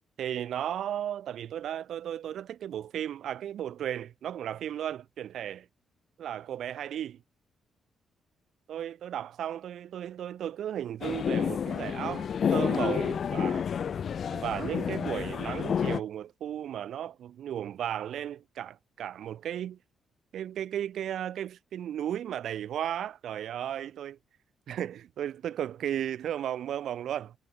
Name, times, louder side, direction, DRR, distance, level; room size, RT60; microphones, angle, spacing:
voice 1, 0.2-5.7 6.2-7.2 8.7-13.7 14.3-19.8 20.3-24.2 24.7-27.3, right 10 dB, 65° right, 1.3 m, -35 dB
sound 1, 11.0-16.0, left 7 dB, 45° left, 0.7 m, -29 dB
cardioid pair, 160°, 0 cm